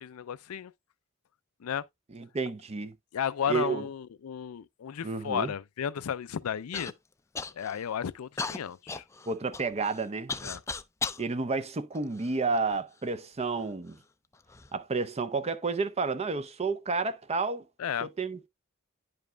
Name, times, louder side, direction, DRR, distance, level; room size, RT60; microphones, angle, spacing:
voice 1, 0.0-0.7 1.6-1.8 3.1-6.9 7.6-9.0 10.4-10.6 17.8-18.1, left 8 dB, 85° left, 0.4 m, -33 dB
voice 2, 2.1-2.9 3.5-3.8 5.0-5.5 9.3-10.3 11.2-14.0 14.7-17.7 18.0-18.5, right 4 dB, 30° right, 0.6 m, -31 dB
Human voice / Cough, 6.7-6.9 7.3-7.8 8.4-11.2 11.9-12.8 13.5-13.6 14.3-14.7, left 4 dB, 15° left, 0.4 m, -37 dB
10.5 x 5.2 x 2.2 m
head